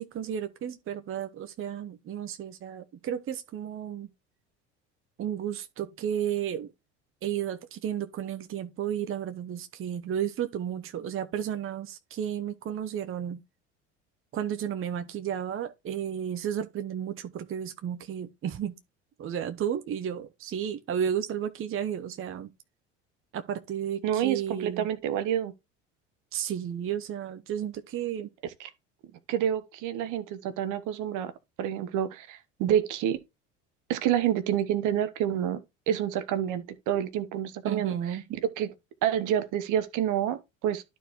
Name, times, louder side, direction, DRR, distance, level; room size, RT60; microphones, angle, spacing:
voice 1, 0.0-4.1 5.2-6.7 7.2-13.4 14.3-18.8 19.2-22.5 23.3-24.9 26.3-28.3 37.6-38.2, right 9 dB, 35° right, 0.8 m, -33 dB
voice 2, 24.0-25.5 28.6-28.7 29.3-31.3 31.6-33.2 33.9-35.6 35.9-38.7 39.0-40.8, right 10 dB, 55° right, 1.2 m, -28 dB
12.0 x 4.4 x 3.1 m
hypercardioid pair, 65°, 36 cm